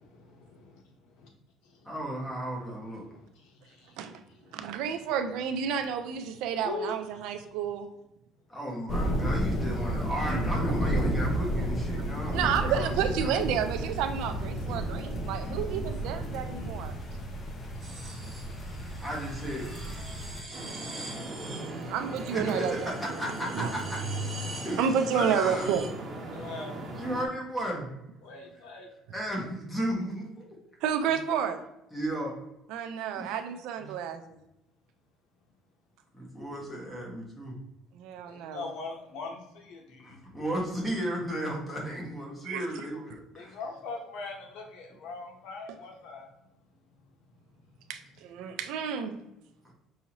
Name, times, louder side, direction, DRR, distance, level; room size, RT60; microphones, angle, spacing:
voice 1, 0.2-0.6 1.2-1.3 4.6-4.7 6.6-6.9 26.3-26.8 28.2-28.9 38.3-40.2 43.4-46.3, left 3 dB, 75° left, 1 dB, 1.0 m, -40 dB
voice 2, 1.8-3.0 8.5-13.3 19.0-19.7 22.3-23.6 23.9-24.0 24.6-25.7 27.0-27.9 29.1-30.4 31.9-32.3 33.1-33.3 33.8-33.9 36.1-37.6 40.0-43.6, equal, 5° left, -3 dB, 1.2 m, -34 dB
voice 3, 4.5-7.9 10.3-10.4 12.3-17.0 21.9-22.9 23.5-23.7 24.8-25.8 30.8-31.6 32.7-34.4 37.9-38.7 42.4-42.9 47.9-49.2, right 8 dB, 80° right, 7 dB, 0.5 m, -30 dB
sound 1, 8.9-20.4, equal, 30° left, 0.7 m, -32 dB
sound 2, 17.8-25.9, right 2 dB, 15° right, 1.0 m, -42 dB
sound 3, 20.5-27.3, right 2 dB, 40° right, 1.2 m, -39 dB
5.6 x 2.7 x 2.9 m, 0.87 s
cardioid pair, 150°, 0 cm